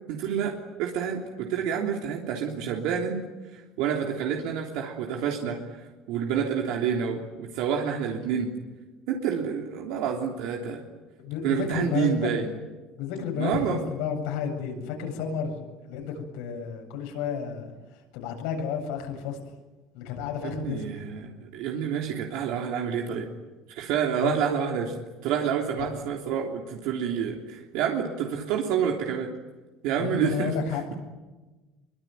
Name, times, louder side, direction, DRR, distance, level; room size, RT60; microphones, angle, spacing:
voice 1, 0.1-3.2 3.5-8.5 9.1-10.8 11.4-12.6 13.4-13.8 20.4-23.3 23.7-29.3 29.8-30.9, right 7 dB, 65° right, 0 dB, 3.3 m, -28 dB
voice 2, 11.2-12.3 13.0-15.6 15.9-17.7 18.1-19.4 19.9-20.8 24.2-24.3 30.0-30.8, left 7 dB, 80° left, 3 dB, 7.9 m, -31 dB
25.5 x 24.0 x 9.4 m, 1.2 s
cardioid pair, 170°, 0 cm